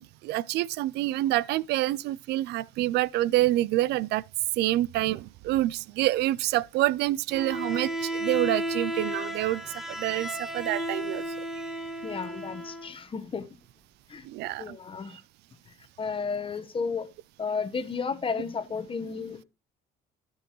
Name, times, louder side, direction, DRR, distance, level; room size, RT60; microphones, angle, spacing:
voice 1, 0.0-4.2 4.6-11.2 14.2-14.8 15.1-15.2, right 16 dB, 80° right, 0.4 m, -27 dB
Bowed string instrument, 7.3-12.9, right 1 dB, ahead, 1.5 m, -33 dB
voice 2, 12.0-13.5 14.1-14.2 14.6-15.2 16.0-17.1 17.4-19.4, left 5 dB, 30° left, 1.1 m, -33 dB
16.0 x 6.1 x 3.1 m
cardioid pair, 110°, 17 cm